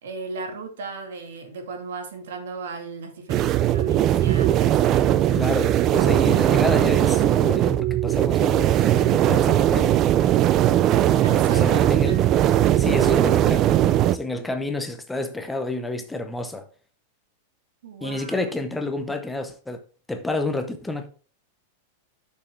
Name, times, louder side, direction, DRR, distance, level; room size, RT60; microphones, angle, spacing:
voice 1, 0.0-5.0 5.9-6.4 11.2-12.3 17.8-18.4, right 4 dB, 75° right, 2.1 m, -36 dB
sound 1, 3.3-14.2, right 12 dB, 25° right, 0.3 m, -19 dB
voice 2, 5.3-10.0 11.5-12.2 12.8-13.7 14.1-16.7 18.0-19.8 20.1-21.1, left 2 dB, 5° left, 0.7 m, -29 dB
8.8 x 6.7 x 3.2 m
supercardioid pair, 175°, 0 cm